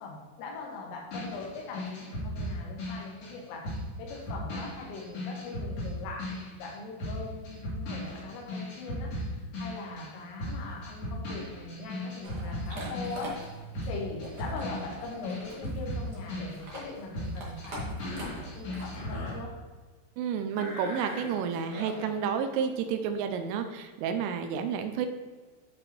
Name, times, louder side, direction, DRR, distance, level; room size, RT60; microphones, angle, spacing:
voice 1, 0.0-13.4 13.9-19.5, left 3 dB, 85° left, -1 dB, 4.3 m, -41 dB
sound 1, 1.1-10.1 10.4-19.3, left 1 dB, 40° left, 2.8 m, -37 dB
sound 2, 12.2-19.2, right 1 dB, 65° right, 1.0 m, -44 dB
Cough, 17.9-18.5 18.9-19.4 20.5-22.2, left 2 dB, 60° left, 1.7 m, -41 dB
voice 2, 20.2-25.1, right 7 dB, 85° right, 6 dB, 3.2 m, -30 dB
11.5 x 5.3 x 4.3 m, 1.4 s
omnidirectional pair, 5.7 m